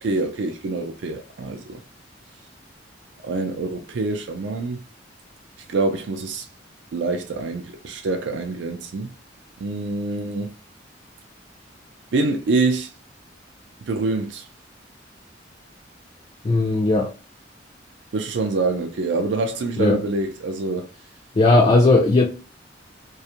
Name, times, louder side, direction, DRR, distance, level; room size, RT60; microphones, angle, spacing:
voice 1, 0.0-1.8 3.2-4.8 5.7-6.5 6.9-9.1 9.6-10.5 12.1-12.9 13.9-14.4 18.1-20.9, right 3 dB, 70° right, 0.4 m, -25 dB
voice 2, 16.4-17.1 19.8-20.0 21.4-22.3, left 2 dB, 30° left, 0.3 m, -16 dB
2.4 x 2.3 x 2.8 m
head